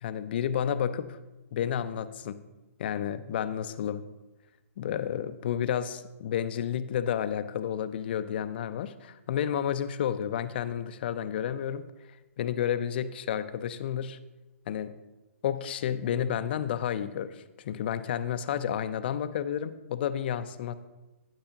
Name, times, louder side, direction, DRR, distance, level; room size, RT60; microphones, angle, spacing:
voice 1, 0.0-1.2 1.5-2.4 2.8-4.0 4.8-11.9 12.4-14.2 14.7-14.9 15.4-20.7, left 9 dB, 45° left, 12 dB, 0.5 m, -31 dB
11.5 x 9.7 x 2.9 m, 1.1 s
hypercardioid pair, 140°, 8 cm